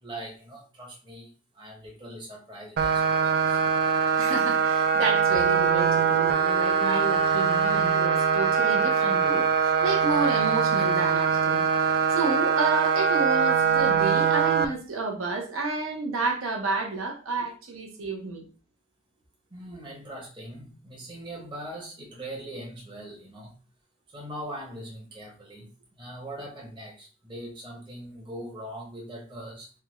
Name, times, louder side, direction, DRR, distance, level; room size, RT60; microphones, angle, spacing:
voice 1, 0.0-1.3 1.5-3.6 19.5-23.5 24.1-25.7 26.0-29.7, right 1 dB, 20° right, 0.8 m, -41 dB
sound 1, 2.8-14.7, right 6 dB, 45° right, 0.3 m, -23 dB
voice 2, 4.2-11.7 12.1-18.5, right 3 dB, 70° right, 0.8 m, -30 dB
sound 2, 5.4-9.5, left 4 dB, 20° left, 0.6 m, -41 dB
3.4 x 2.3 x 3.0 m
head